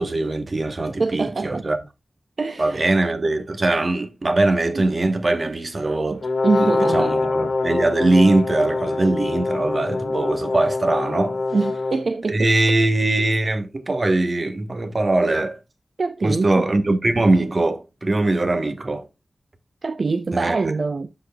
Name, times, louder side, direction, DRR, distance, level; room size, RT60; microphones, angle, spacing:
voice 1, 0.0-1.8 2.6-6.2 6.6-11.4 12.3-15.6 16.2-19.1 20.3-20.6, right 2 dB, 45° right, 1.0 m, -21 dB
voice 2, 1.0-1.7 2.4-2.8 4.7-4.8 5.4-5.6 6.1-7.1 11.5-12.5 16.0-16.7 19.8-21.1, right 4 dB, 60° right, 0.4 m, -24 dB
Brass instrument, 6.2-12.0, left 3 dB, 70° left, 1.2 m, -24 dB
12.0 x 4.1 x 2.2 m
wide cardioid pair, 75°, 0 cm